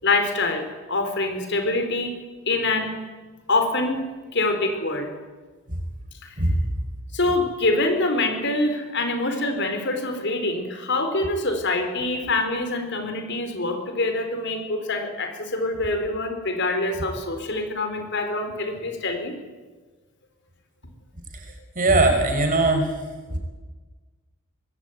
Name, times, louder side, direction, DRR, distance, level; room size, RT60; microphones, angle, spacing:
voice 1, 0.0-2.1 2.5-3.0 3.5-4.1 4.3-5.1 6.2-6.3 7.1-19.4, left 2 dB, 55° left, 6 dB, 4.3 m, -25 dB
voice 2, 21.3-23.0 23.3-23.4, right 2 dB, 40° right, 5 dB, 5.4 m, -21 dB
25.5 x 21.0 x 9.5 m, 1.3 s
head